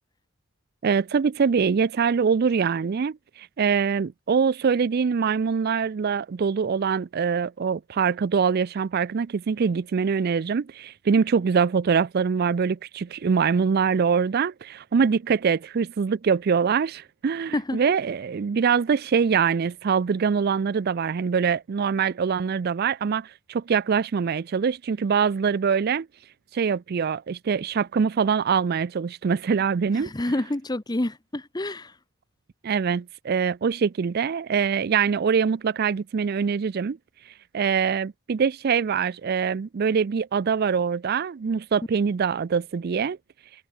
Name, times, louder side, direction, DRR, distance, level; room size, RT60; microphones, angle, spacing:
voice 1, 0.8-26.1 26.5-30.1 32.6-37.0 37.5-43.2, right 6 dB, 50° right, 0.4 m, -24 dB
voice 2, 29.9-31.9, left 1 dB, 20° left, 0.8 m, -28 dB
head